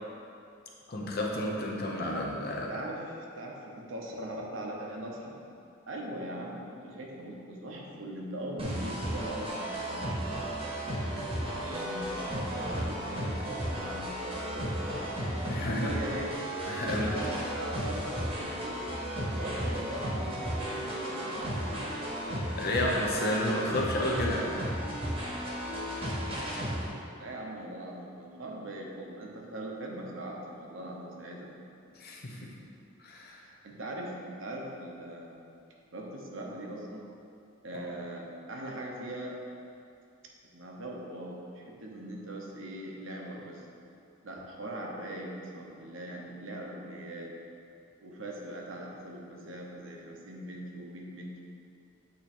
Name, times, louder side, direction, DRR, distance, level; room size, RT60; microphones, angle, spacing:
voice 1, 0.9-2.7 15.5-15.9 16.7-17.2 22.6-24.6 32.0-32.5 33.0-33.4 37.7-37.9, left 1 dB, 50° left, -2 dB, 0.8 m, -31 dB
voice 2, 2.5-5.4 5.9-10.2 10.6-11.2 11.6-15.1 15.7-16.3 16.8-18.8 19.0-21.5 27.2-31.6 33.3-35.5 35.9-37.0 37.6-39.4 40.5-43.7 44.2-47.4 48.0-51.4, right 1 dB, 70° right, -1 dB, 1.0 m, -41 dB
sound 1, 8.6-26.9, equal, 30° right, 1.1 m, -34 dB
8.5 x 3.1 x 4.3 m, 2.5 s
head